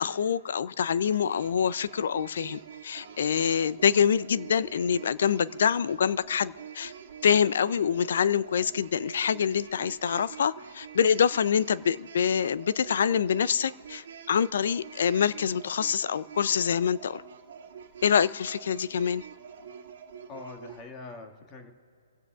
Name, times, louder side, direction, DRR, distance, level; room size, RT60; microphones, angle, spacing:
voice 1, 0.0-6.9 7.2-17.2 18.0-19.2, left 7 dB, 60° left, 18 dB, 0.4 m, -26 dB
sound 1, 1.0-20.8, right 7 dB, 60° right, 1.9 m, -46 dB
voice 2, 20.3-21.7, left 3 dB, 25° left, 3 dB, 1.9 m, -43 dB
30.0 x 16.0 x 2.4 m, 2.4 s
hypercardioid pair, 140°, 0 cm